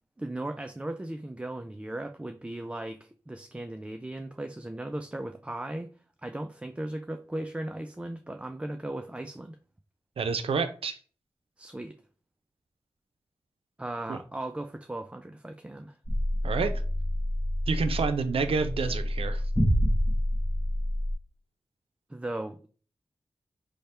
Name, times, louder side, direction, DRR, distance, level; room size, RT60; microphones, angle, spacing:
voice 1, 0.2-5.9 6.2-9.6 11.6-12.0 13.8-16.0 22.1-22.7, right 1 dB, 10° right, 0.3 m, -37 dB
voice 2, 10.2-11.0 14.1-14.2 16.4-16.7 17.7-19.4, right 5 dB, 80° right, 0.5 m, -28 dB
sound 1, 16.0-21.1, equal, 15° left, 1.2 m, -28 dB
3.2 x 2.1 x 4.2 m
cardioid pair, 55°, 10 cm